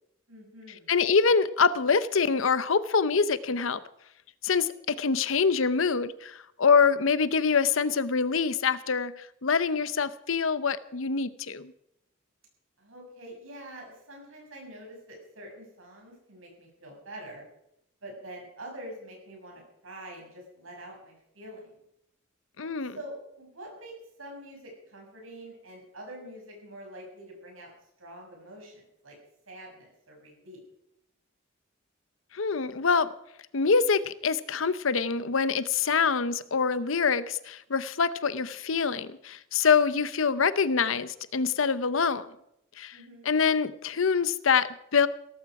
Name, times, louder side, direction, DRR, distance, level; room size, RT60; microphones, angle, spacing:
voice 1, 0.3-0.9 12.8-17.4 18.0-21.8 22.6-27.7 28.0-29.2 29.5-30.6 42.9-43.3, right 1 dB, 80° right, 0 dB, 6.6 m, -45 dB
voice 2, 0.9-3.8 4.4-11.7 22.6-23.0 32.3-33.1 33.5-42.3 42.8-43.0 43.2-45.1, left 5 dB, 75° left, 15 dB, 0.8 m, -25 dB
17.0 x 14.5 x 4.8 m, 0.79 s
head